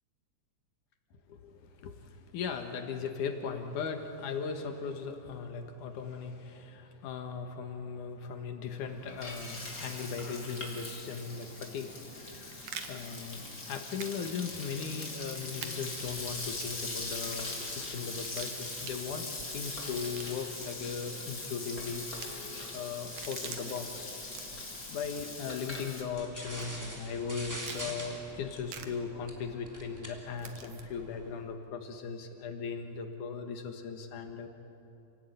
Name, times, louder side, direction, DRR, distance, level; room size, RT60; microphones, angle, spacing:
voice 1, 1.3-19.3 19.5-24.1 24.9-34.5, left 5 dB, 85° left, 5 dB, 3.1 m, -38 dB
Frying (food), 8.7-26.0, left 2 dB, 30° left, 3.5 m, -41 dB
sound 1, 12.1-12.9 14.0-14.2 14.4-14.5 15.6-15.7 16.5-16.9 18.1-19.0 19.9-20.8 22.0-22.3 23.0-23.8 24.2-24.7 25.7-26.0 26.6-26.7 27.6-27.9 28.7-28.9 30.4-30.8, right 8 dB, 85° right, 3.0 m, -45 dB
sound 2, 26.1-31.4, equal, 5° right, 3.0 m, -45 dB
29.0 x 17.5 x 9.3 m, 2.8 s
omnidirectional pair, 3.5 m